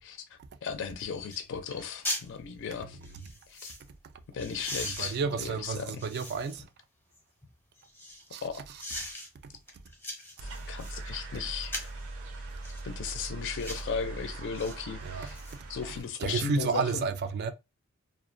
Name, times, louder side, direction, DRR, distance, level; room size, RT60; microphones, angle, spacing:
voice 1, 0.0-3.0 3.5-3.7 4.3-6.0 8.4-8.6 10.7-11.9 12.8-15.4 15.7-17.1, left 6 dB, 60° left, 0.4 m, -36 dB
sound 1, 0.8-0.9 1.3-1.4 1.7-2.3 3.0-3.8 4.4-6.7 7.1-8.3 8.8-9.3 9.7-11.0 11.6-12.0 12.6-12.8 13.5-13.9 14.5-14.8 15.1-15.9 16.3-16.4, left 1 dB, 10° left, 0.6 m, -40 dB
voice 2, 4.8-6.7 8.3-8.4 15.0-15.3 16.2-17.5, right 5 dB, 50° right, 0.3 m, -31 dB
sound 2, 10.4-16.0, right 2 dB, 85° right, 0.7 m, -41 dB
2.4 x 2.1 x 2.5 m
head